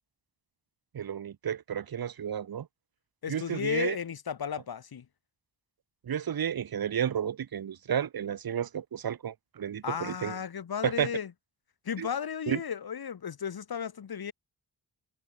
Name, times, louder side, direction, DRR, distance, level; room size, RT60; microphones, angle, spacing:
voice 1, 0.9-2.7 3.3-4.0 6.0-10.3 10.8-11.1 12.0-12.1 12.5-12.6, right 8 dB, 55° right, 0.9 m, -32 dB
voice 2, 3.2-5.0 9.8-11.3 11.8-14.3, left 7 dB, 55° left, 1.6 m, -34 dB
wide cardioid pair, 140°, 43 cm